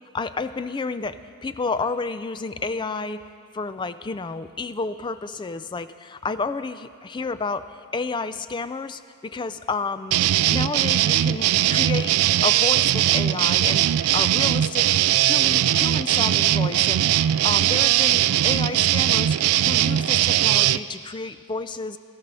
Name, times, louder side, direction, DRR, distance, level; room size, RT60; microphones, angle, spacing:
voice 1, 0.1-3.2 3.5-10.2 10.5-12.1 12.4-13.9 14.1-15.0 15.2-19.4 19.6-22.0, left 4 dB, 20° left, 12 dB, 0.3 m, -30 dB
sound 1, 10.1-20.8, right 12 dB, 85° right, 0.3 m, -20 dB
16.5 x 14.5 x 5.4 m, 2.3 s
head